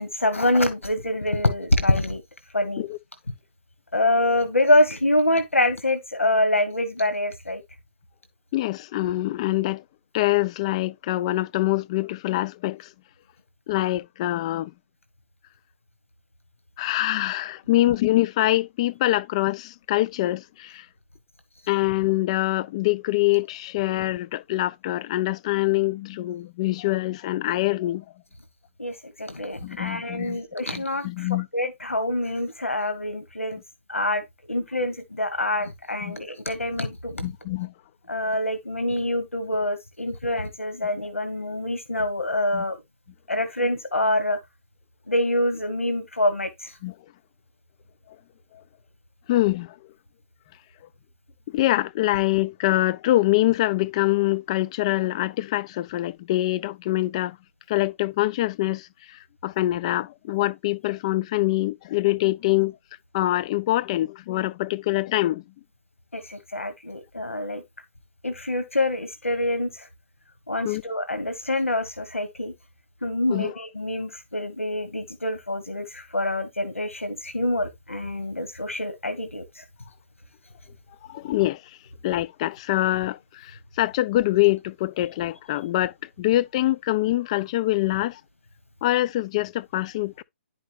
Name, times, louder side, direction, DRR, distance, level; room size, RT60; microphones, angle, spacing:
voice 1, 0.0-2.2 2.5-2.9 3.9-7.6 28.8-33.6 33.9-37.2 38.1-42.8 43.3-44.4 45.1-46.8 66.1-67.6 68.2-69.9 70.5-72.5 73.0-79.6, left 1 dB, 85° left, 1.4 m, -25 dB
voice 2, 8.5-9.8 10.1-12.9 13.7-14.7 16.8-20.9 21.7-28.0 29.6-30.4 30.7-31.5 36.0-36.2 37.2-37.7 42.5-42.6 46.8-46.9 49.3-49.7 51.5-57.4 57.7-62.7 63.1-65.4 70.6-70.8 73.3-73.5 81.1-81.6 82.0-88.2 88.8-90.2, left 16 dB, 30° left, 0.4 m, -24 dB
10.5 x 5.2 x 3.1 m
figure-of-eight pair, 135°, 7 cm